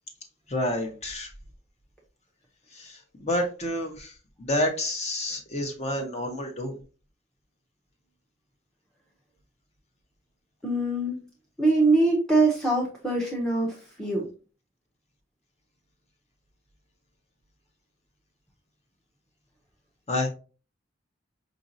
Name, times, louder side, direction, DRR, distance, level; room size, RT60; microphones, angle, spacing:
voice 1, 0.5-1.3 2.7-4.1 4.4-6.7 20.1-20.3, left 1 dB, 35° left, 4 dB, 0.9 m, -29 dB
voice 2, 10.6-11.2 11.6-14.3, right 2 dB, 5° left, -3 dB, 0.7 m, -23 dB
5.0 x 2.6 x 2.6 m, 0.35 s
head